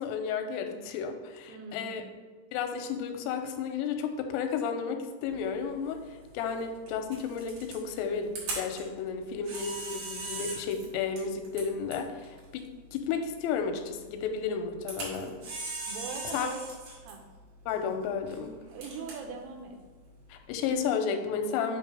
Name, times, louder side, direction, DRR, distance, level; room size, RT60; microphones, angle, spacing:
voice 1, 0.0-2.0 2.5-12.6 12.9-15.3 16.3-16.5 17.7-18.6 20.3-21.8, left 6 dB, 90° left, 6 dB, 3.2 m, -32 dB
voice 2, 1.5-2.1 15.9-16.7 17.0-17.2 18.7-19.8, right 5 dB, 85° right, 3 dB, 3.3 m, -41 dB
Camera, 5.3-20.7, right 3 dB, 55° right, 3.0 m, -42 dB
8.4 x 3.0 x 4.7 m, 1.4 s
omnidirectional pair, 5.7 m